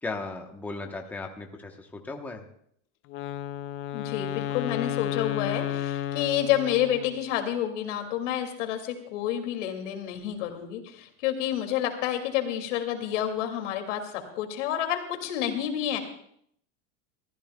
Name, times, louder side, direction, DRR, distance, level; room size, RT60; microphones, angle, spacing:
voice 1, 0.0-2.4, left 3 dB, 5° left, 2 dB, 0.9 m, -36 dB
Wind instrument woodwind instrument, 3.1-7.3, left 11 dB, 35° left, 0.5 m, -32 dB
voice 2, 3.9-16.0, left 11 dB, 90° left, 5 dB, 2.4 m, -29 dB
24.5 x 14.5 x 2.3 m, 0.68 s
supercardioid pair, 160°, 36 cm